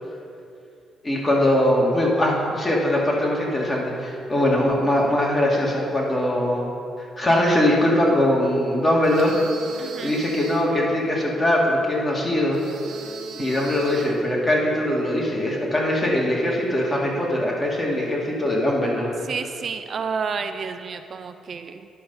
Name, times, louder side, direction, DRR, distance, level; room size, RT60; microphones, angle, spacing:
voice 1, 1.0-6.7 7.2-9.3 9.8-12.6 13.4-19.1, left 1 dB, 25° left, -2 dB, 2.0 m, -21 dB
sound 1, 9.0-10.7 12.5-14.2, right 6 dB, 75° right, 1.5 m, -38 dB
voice 2, 9.8-10.2 19.2-21.9, right 5 dB, 50° right, 8 dB, 0.4 m, -30 dB
10.5 x 5.4 x 5.4 m, 2.5 s
cardioid pair, 90°, 0 cm